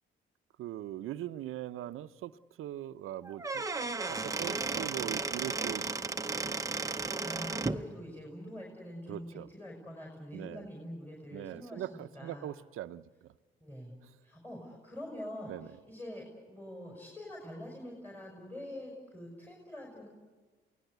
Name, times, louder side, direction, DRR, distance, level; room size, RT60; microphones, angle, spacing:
voice 1, 0.6-3.6 4.1-6.2 9.1-9.5 10.3-10.7 11.3-13.3 15.5-15.7, right 13 dB, 80° right, 13 dB, 0.7 m, -41 dB
Squeak / Wood, 3.2-7.8, right 3 dB, 15° right, 0.9 m, -34 dB
voice 2, 7.2-12.5 13.6-13.9 14.2-20.1, left 1 dB, 10° left, 0 dB, 5.6 m, -45 dB
28.5 x 18.5 x 8.1 m, 1.4 s
cardioid pair, 95°, 21 cm